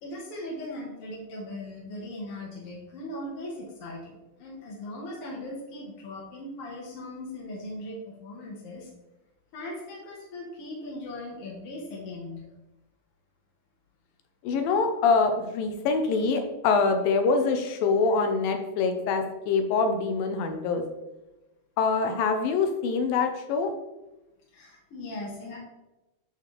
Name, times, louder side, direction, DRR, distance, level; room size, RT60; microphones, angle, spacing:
voice 1, 0.0-8.9 9.5-12.5 24.5-25.6, left 1 dB, 60° left, -4 dB, 1.5 m, -39 dB
voice 2, 14.4-20.8 21.8-23.7, left 4 dB, 80° left, 5 dB, 2.3 m, -25 dB
12.0 x 4.1 x 3.2 m, 1.0 s
omnidirectional pair, 4.3 m